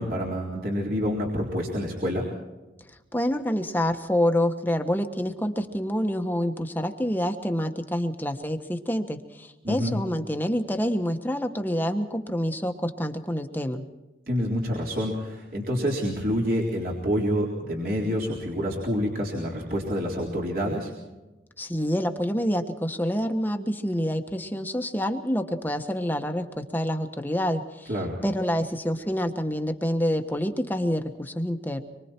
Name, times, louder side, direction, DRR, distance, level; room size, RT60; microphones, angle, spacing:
voice 1, 0.0-2.2 9.6-10.0 14.3-20.9 27.9-28.2, equal, 55° right, -2 dB, 3.9 m, -27 dB
voice 2, 3.1-13.8 21.6-27.9 28.2-31.8, equal, 10° left, 5 dB, 1.3 m, -27 dB
25.5 x 23.5 x 4.5 m, 1.1 s
head